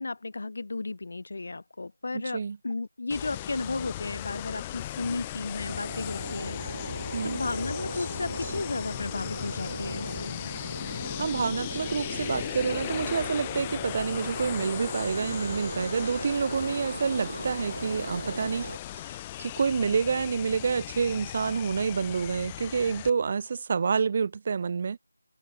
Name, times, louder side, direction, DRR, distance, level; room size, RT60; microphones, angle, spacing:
voice 1, 0.0-6.6 7.2-10.4, left 3 dB, 45° left, 0.9 m, -34 dB
voice 2, 2.1-2.6 7.1-7.4 10.9-18.7 19.0-25.0, right 5 dB, 30° right, 0.9 m, -28 dB
sound 1, 3.1-23.1, left 14 dB, 15° left, 1.9 m, -37 dB
sound 2, 5.6-18.8, right 2 dB, 55° right, 1.0 m, -38 dB
figure-of-eight pair, 165°, 0 cm